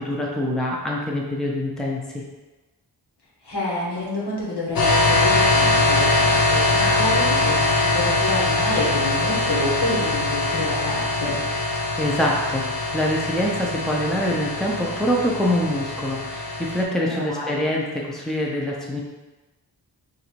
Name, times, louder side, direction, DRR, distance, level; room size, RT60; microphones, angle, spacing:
voice 1, 0.0-2.2 12.0-19.0, left 1 dB, ahead, -3 dB, 0.6 m, -25 dB
voice 2, 3.4-11.4 17.0-17.6, left 2 dB, 80° left, -5 dB, 1.4 m, -28 dB
sound 1, 4.8-16.8, left 2 dB, 60° left, 0.8 m, -22 dB
3.9 x 2.7 x 4.5 m, 1.2 s
wide cardioid pair, 100°, 40 cm